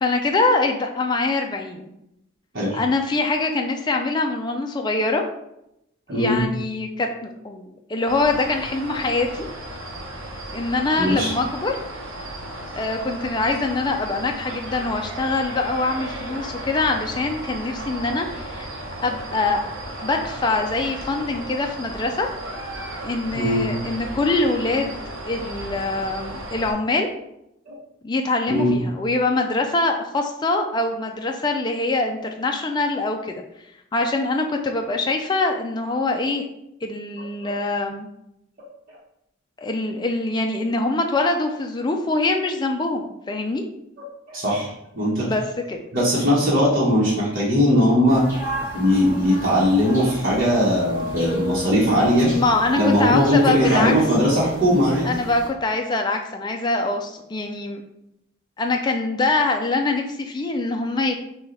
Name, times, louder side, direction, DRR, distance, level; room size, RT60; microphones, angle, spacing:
voice 1, 0.0-1.9 2.7-5.2 6.1-9.5 10.5-11.8 12.8-18.7 19.0-19.7 20.0-22.3 23.0-27.1 28.0-33.4 33.9-36.5 36.8-38.1 39.6-43.6 45.2-45.4 45.7-45.8 52.3-53.9 55.0-57.8 58.6-61.2, left 3 dB, 20° left, 3 dB, 0.4 m, -24 dB
voice 2, 6.1-6.4 11.0-11.3 23.3-23.7 27.7-27.8 28.5-28.8 37.4-37.5 44.3-45.3 45.9-48.2 48.7-52.3 52.8-55.1, equal, 45° right, -7 dB, 1.2 m, -19 dB
sound 1, 8.1-26.7, right 1 dB, 75° right, 0.8 m, -35 dB
sound 2, 48.1-55.5, equal, 10° right, 1.3 m, -32 dB
6.3 x 2.3 x 3.3 m, 0.83 s
head